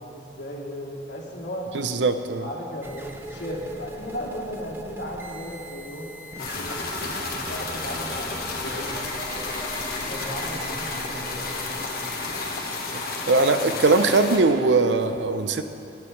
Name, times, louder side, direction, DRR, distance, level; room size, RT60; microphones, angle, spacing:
voice 1, 0.0-1.7 2.4-6.1 6.5-9.6 10.0-11.9, equal, 85° left, -3 dB, 2.4 m, -36 dB
voice 2, 1.7-2.5 13.3-15.6, right 3 dB, 85° right, 9 dB, 0.6 m, -20 dB
sound 1, 2.8-14.7, right 1 dB, 10° right, 0.6 m, -40 dB
sound 2, 6.4-14.4, left 3 dB, 55° left, 1.5 m, -31 dB
21.5 x 10.0 x 3.3 m, 2.8 s
head